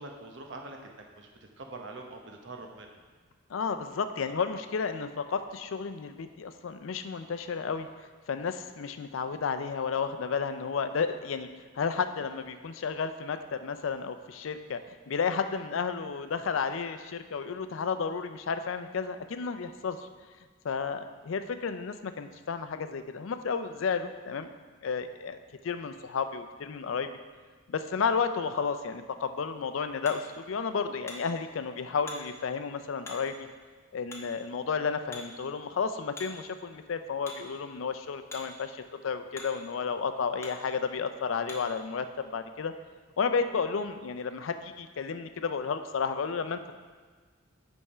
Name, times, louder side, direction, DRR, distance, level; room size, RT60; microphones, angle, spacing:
voice 1, 0.0-3.0, right 2 dB, 65° right, 2 dB, 0.9 m, -44 dB
voice 2, 3.5-7.9 8.3-11.5 11.7-14.8 15.1-20.1 20.6-24.5 24.8-25.4 25.6-27.2 27.7-33.5 33.9-42.1 42.3-42.7 43.2-46.7, left 5 dB, 75° left, 9 dB, 0.4 m, -32 dB
Hammer, 29.2-41.8, left 2 dB, 15° left, 1.0 m, -50 dB
8.5 x 3.6 x 5.4 m, 1.5 s
head